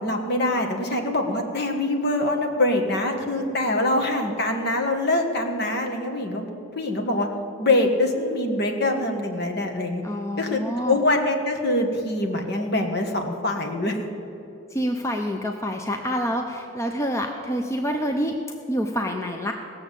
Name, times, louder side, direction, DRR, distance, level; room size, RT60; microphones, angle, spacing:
voice 1, 0.0-6.5 6.7-7.3 7.6-10.0 10.4-14.0, left 2 dB, 55° left, 3 dB, 1.5 m, -24 dB
voice 2, 10.0-11.0 14.7-18.4 18.7-19.5, equal, 15° left, 3 dB, 0.6 m, -27 dB
17.5 x 7.0 x 8.2 m, 2.9 s
head